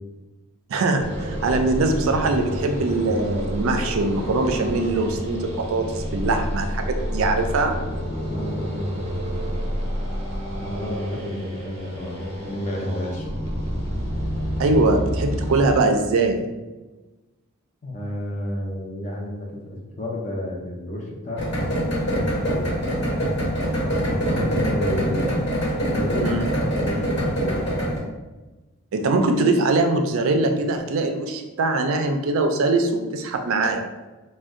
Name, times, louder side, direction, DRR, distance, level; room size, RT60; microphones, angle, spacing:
voice 1, 0.7-7.7 14.6-16.4 26.2-26.4 28.9-33.8, right 3 dB, 65° right, 5 dB, 0.3 m, -22 dB
sound 1, 1.0-15.8, equal, 30° right, 0.7 m, -29 dB
voice 2, 8.3-8.9 10.5-13.3 17.8-19.5 20.0-25.3 25.9-27.9, left 1 dB, 30° left, -1 dB, 0.5 m, -31 dB
sound 2, 21.4-28.0, equal, 55° left, 1.2 m, -24 dB
2.5 x 2.1 x 3.6 m, 1.2 s
head